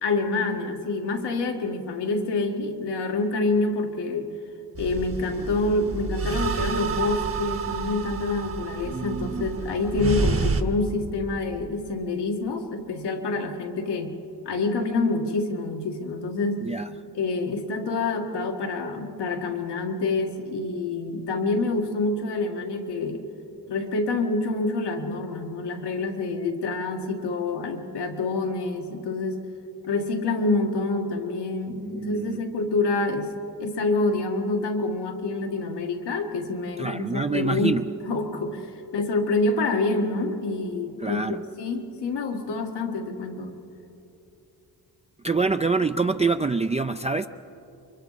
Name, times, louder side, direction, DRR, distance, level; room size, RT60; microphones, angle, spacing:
voice 1, 0.0-4.3 4.8-14.2 14.5-16.6 17.1-23.2 23.7-29.4 29.9-33.3 33.6-37.8 38.1-38.7 38.9-41.2 41.6-43.6, left 3 dB, 90° left, 3 dB, 1.9 m, -27 dB
sound 1, 4.8-10.6, right 5 dB, 35° right, 1.1 m, -29 dB
voice 2, 8.9-9.5 16.6-16.9 31.7-32.4 36.8-37.8 41.0-41.4 45.2-47.3, right 4 dB, 20° right, 7 dB, 0.4 m, -26 dB
29.0 x 24.0 x 4.1 m, 2.9 s
cardioid pair, 105°, 40 cm